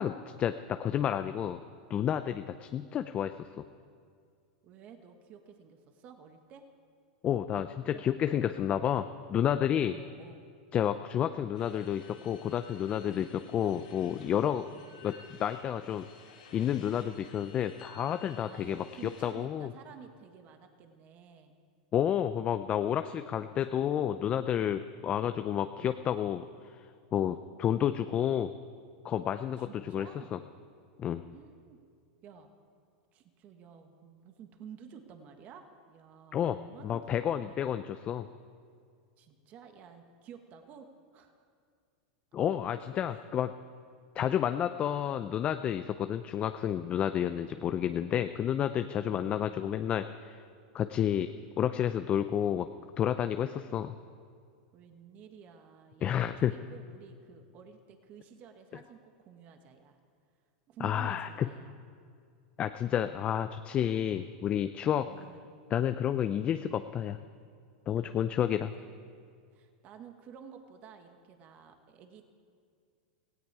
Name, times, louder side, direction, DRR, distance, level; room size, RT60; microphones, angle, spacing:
voice 1, 0.0-1.6 1.9-3.5 7.2-9.9 10.7-14.7 15.0-16.1 16.5-18.8 19.2-19.7 21.9-26.8 27.1-28.5 29.0-30.4 31.0-31.2 36.3-36.6 36.8-38.3 42.3-43.5 44.2-50.4 50.7-51.3 51.6-52.7 53.0-53.9 56.0-56.5 60.8-61.3 62.6-65.1 65.7-67.2 67.9-68.7, left 10 dB, 30° left, 9 dB, 0.5 m, -30 dB
voice 2, 4.6-6.6 7.8-8.2 9.8-10.4 14.7-14.9 18.4-21.5 29.5-30.3 31.3-31.8 32.2-32.5 33.1-37.6 39.2-41.5 43.0-43.3 49.0-49.5 54.7-60.0 60.7-61.7 65.0-65.5 67.9-69.1 69.5-72.3, right 7 dB, 40° right, 6 dB, 1.4 m, -52 dB
sound 1, 11.5-19.3, left 5 dB, 85° left, 5.0 m, -55 dB
17.5 x 16.5 x 4.8 m, 2.2 s
supercardioid pair, 130°, 4 cm